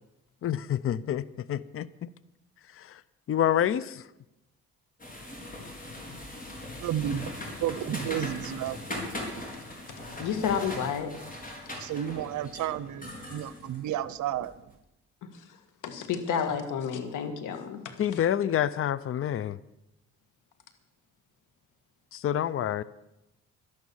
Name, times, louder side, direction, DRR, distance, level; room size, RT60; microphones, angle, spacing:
voice 1, 0.4-2.1 2.8-3.0 3.3-4.0 18.0-19.6 22.1-22.8, left 10 dB, 45° left, 19 dB, 0.6 m, -28 dB
sound 1, 5.0-14.5, left 1 dB, 30° left, 4.2 m, -40 dB
voice 2, 6.8-7.3 7.6-8.8 9.3-9.5 11.7-14.6, right 11 dB, 75° right, 17 dB, 0.8 m, -32 dB
voice 3, 10.2-11.1 15.2-15.3 15.8-18.0, left 7 dB, 85° left, 8 dB, 1.8 m, -30 dB
12.0 x 11.5 x 7.1 m, 0.90 s
cardioid pair, 90°, 30 cm